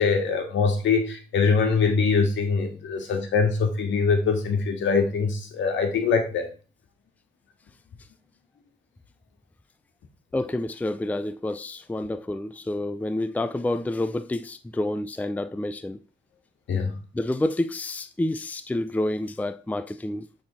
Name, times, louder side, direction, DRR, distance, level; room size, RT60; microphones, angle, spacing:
voice 1, 0.0-6.5 16.7-17.0, left 5 dB, 70° left, 2.0 m, -23 dB
voice 2, 10.3-16.0 17.1-20.3, left 1 dB, 10° left, 0.5 m, -28 dB
8.7 x 4.2 x 4.2 m
cardioid pair, 90°, 20 cm